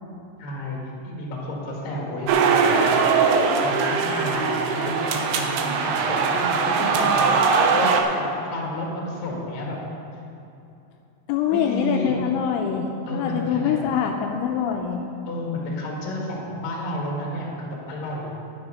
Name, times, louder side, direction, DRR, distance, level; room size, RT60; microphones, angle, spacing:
voice 1, 0.4-3.3 3.6-7.3 7.7-7.9 8.1-9.8 11.5-12.1 13.1-13.8 15.3-18.3, left 1 dB, 50° left, -3 dB, 2.6 m, -31 dB
sound 1, 2.3-8.0, right 5 dB, 80° right, 2.4 m, -21 dB
voice 2, 6.8-7.2 11.3-15.1, left 8 dB, 85° left, 3 dB, 2.9 m, -25 dB
10.5 x 9.5 x 5.1 m, 2.8 s
omnidirectional pair, 5.6 m